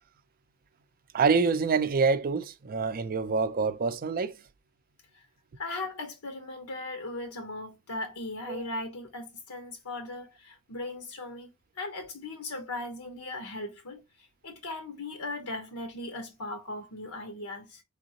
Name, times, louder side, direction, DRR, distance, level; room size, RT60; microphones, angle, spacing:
voice 1, 1.1-4.4 8.5-8.6, right 5 dB, 40° right, 0.4 m, -26 dB
voice 2, 5.6-11.5 11.8-17.8, left 2 dB, 85° left, 1.0 m, -38 dB
3.9 x 3.5 x 2.8 m
head